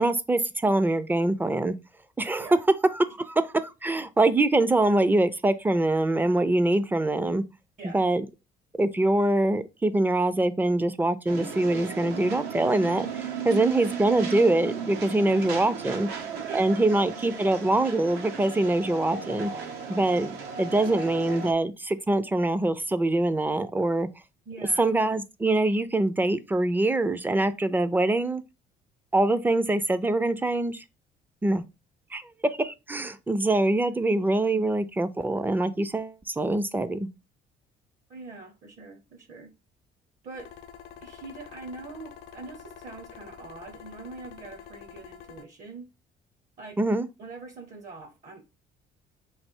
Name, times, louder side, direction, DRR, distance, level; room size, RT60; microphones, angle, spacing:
voice 1, 0.0-1.7 2.2-2.5 2.9-7.4 7.9-8.3 8.8-16.1 16.5-19.5 19.9-20.3 20.6-24.1 24.8-28.4 29.1-30.8 31.4-31.6 32.1-32.2 32.6-37.1 46.8-47.1, right 2 dB, 10° right, 0.4 m, -24 dB
sound 1, 11.3-21.5, right 6 dB, 85° right, 0.8 m, -35 dB
voice 2, 15.9-17.4 20.8-21.0 24.5-24.9 34.0-34.1 38.1-39.5 40.2-40.5 41.0-45.9 46.6-46.8 47.2-48.4, right 3 dB, 50° right, 0.8 m, -44 dB
sound 2, 40.3-45.4, left 8 dB, 75° left, 0.7 m, -47 dB
3.2 x 2.6 x 4.4 m
cardioid pair, 110°, 17 cm